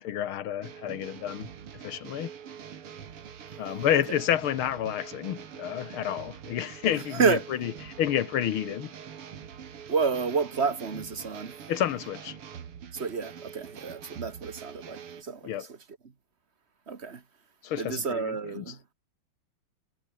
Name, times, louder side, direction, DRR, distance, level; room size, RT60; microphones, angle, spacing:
voice 1, 0.0-1.5 1.8-2.3 3.6-8.9 11.7-12.4 15.4-15.7 17.6-18.7, left 11 dB, 75° left, 1.9 m, -30 dB
sound 1, 0.6-15.2, right 8 dB, 90° right, 2.9 m, -44 dB
voice 2, 7.1-7.4 9.9-11.5 12.9-15.5 16.9-17.2 17.8-18.8, right 5 dB, 30° right, 1.7 m, -29 dB
omnidirectional pair, 2.4 m